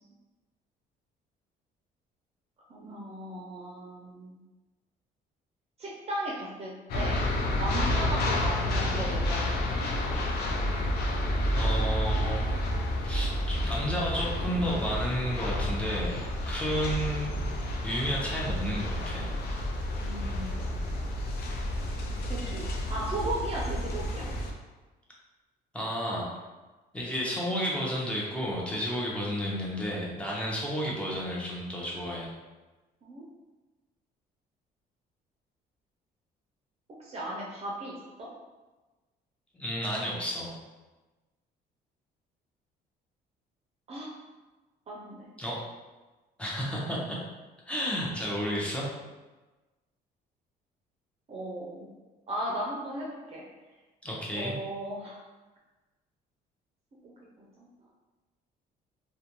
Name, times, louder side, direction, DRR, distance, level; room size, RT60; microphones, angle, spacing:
voice 1, 2.7-4.4 5.8-7.2 7.6-10.2 20.0-20.9 22.3-24.3 33.0-33.2 37.0-38.3 43.9-44.1 44.9-45.3 46.8-47.1 51.3-51.9 52.3-53.4 54.3-55.2 57.0-57.7, right 1 dB, 35° right, -4 dB, 0.5 m, -37 dB
sound 1, 6.9-24.5, left 1 dB, 70° left, 0.5 m, -30 dB
voice 2, 11.5-12.6 13.1-16.2 16.5-17.4 17.8-19.3 25.7-26.3 26.9-32.3 39.6-40.5 45.4-45.6 46.4-47.2 47.7-48.9 54.0-54.6, equal, 5° left, -4 dB, 0.7 m, -32 dB
2.4 x 2.2 x 2.9 m, 1.2 s
cardioid pair, 110°, 17 cm